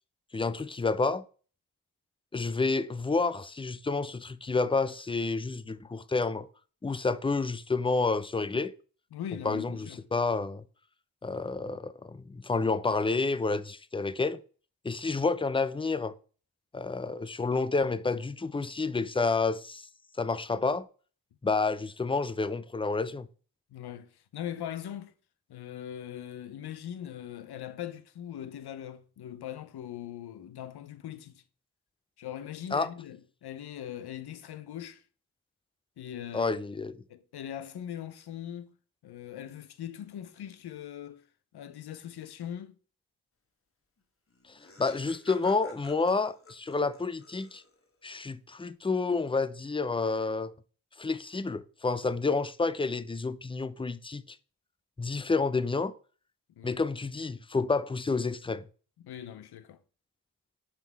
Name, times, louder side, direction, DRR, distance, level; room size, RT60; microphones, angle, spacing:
voice 1, 0.3-1.2 2.3-6.5 6.8-8.7 9.4-10.6 11.2-14.4 14.8-16.1 16.7-19.9 20.2-20.9 21.4-23.3 32.7-32.9 36.3-37.0 44.5-47.6 48.0-50.5 51.0-54.4 55.0-55.9 56.6-58.6, left 3 dB, 15° left, 0.5 m, -29 dB
voice 2, 9.1-10.1 23.7-25.1 25.5-31.4 32.2-35.0 36.0-36.6 37.1-38.8 39.0-41.3 41.5-42.8 56.6-56.8 59.0-59.8, left 10 dB, 75° left, 0.7 m, -41 dB
Laughter, 44.0-44.1 44.3-48.0, left 3 dB, 35° left, 1.4 m, -53 dB
5.9 x 3.6 x 4.6 m
supercardioid pair, 45°, 39 cm